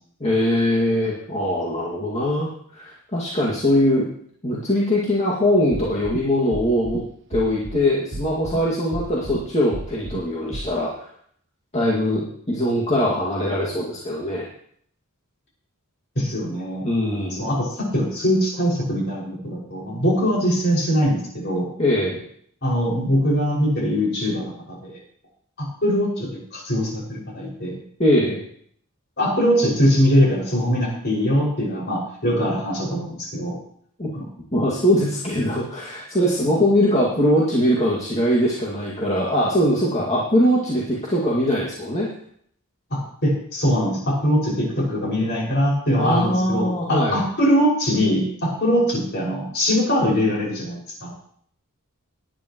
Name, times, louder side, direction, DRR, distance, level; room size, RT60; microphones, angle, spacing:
voice 1, 0.2-4.1 4.4-7.0 7.3-11.1 11.7-14.5 16.8-17.5 21.8-22.2 28.0-28.4 34.0-34.1 34.5-42.1 45.9-47.2, left 1 dB, 30° left, -5 dB, 2.2 m, -21 dB
sound 1, 5.7-6.2 6.5-7.0 7.3-7.8 8.1-8.6 8.9-9.4 9.7-10.2 10.5-10.6, right 1 dB, 55° right, 1.1 m, -31 dB
voice 2, 16.1-16.9 17.4-21.7 22.6-25.0 25.8-27.8 29.2-33.5 34.1-34.2 42.9-51.1, equal, 50° left, -3 dB, 6.1 m, -22 dB
19.5 x 10.5 x 3.1 m, 0.63 s
head